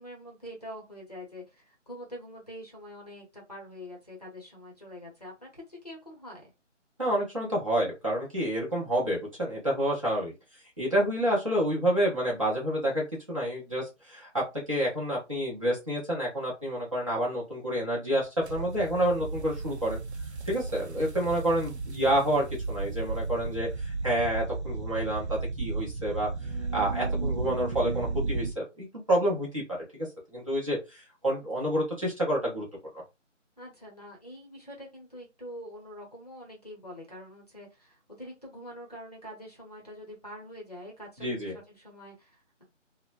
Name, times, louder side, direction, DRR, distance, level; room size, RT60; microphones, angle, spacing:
voice 1, 0.0-6.5 33.6-42.6, equal, 30° left, 0 dB, 0.7 m, -45 dB
voice 2, 7.0-10.3 10.8-20.0 20.5-26.3 26.7-29.6 30.0-30.1 30.3-32.6 32.9-33.0 41.2-41.5, right 1 dB, 25° right, -6 dB, 0.9 m, -28 dB
sound 1, 18.4-28.5, right 3 dB, 60° right, 0.5 m, -34 dB
2.9 x 2.1 x 2.4 m, 0.24 s
figure-of-eight pair, 175°, 37 cm